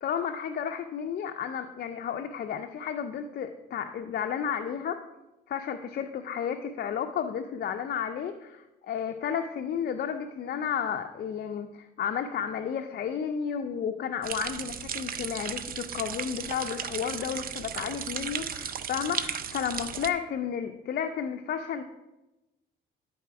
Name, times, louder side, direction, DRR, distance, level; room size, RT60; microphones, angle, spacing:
voice 1, 0.0-5.0 5.5-21.8, left 8 dB, 55° left, 6 dB, 0.5 m, -32 dB
sound 1, 14.2-20.1, right 7 dB, 50° right, 0.5 m, -35 dB
10.5 x 4.2 x 4.7 m, 1.0 s
cardioid pair, 90°, 20 cm